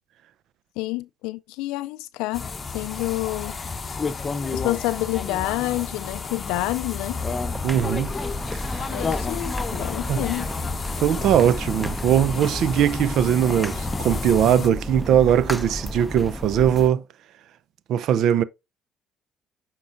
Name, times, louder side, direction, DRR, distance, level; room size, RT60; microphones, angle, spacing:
voice 1, 0.8-2.5 2.7-3.6 4.5-7.2 8.9-10.5, left 18 dB, 85° left, 0.3 m, -28 dB
sound 1, 2.3-14.7, left 4 dB, 35° left, 0.8 m, -31 dB
sound 2, 7.1-16.9, equal, 5° right, 0.8 m, -33 dB
voice 2, 7.6-8.1 10.1-10.2 11.0-17.0 17.9-18.4, right 10 dB, 70° right, 0.5 m, -20 dB
8.5 x 4.6 x 2.5 m
supercardioid pair, 75°, 0 cm